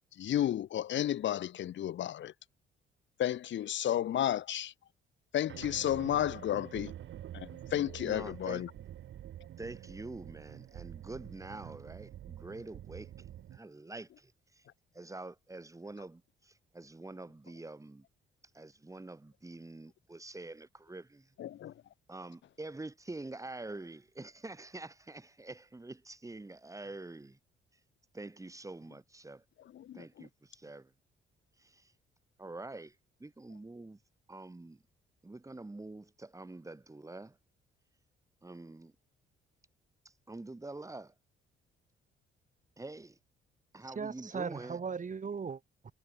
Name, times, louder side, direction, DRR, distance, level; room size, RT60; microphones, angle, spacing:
voice 1, 0.1-2.3 3.2-4.7 5.3-6.9 7.3-8.7 21.4-21.7 29.7-30.0, left 11 dB, 70° left, 1.7 m, -32 dB
sound 1, 5.5-13.6, right 11 dB, 70° right, 4.2 m, -47 dB
voice 2, 8.0-8.6 9.6-14.7 14.9-18.0 18.5-21.3 22.1-27.4 28.1-29.4 29.9-30.9 31.6-31.9 32.4-34.0 34.3-34.8 35.2-37.4 38.4-38.9 40.0-41.1 42.8-43.2 43.7-44.8, right 2 dB, 15° right, 6.7 m, -46 dB
voice 3, 43.8-45.9, right 5 dB, 40° right, 6.6 m, -38 dB
cardioid pair, 90°, 20 cm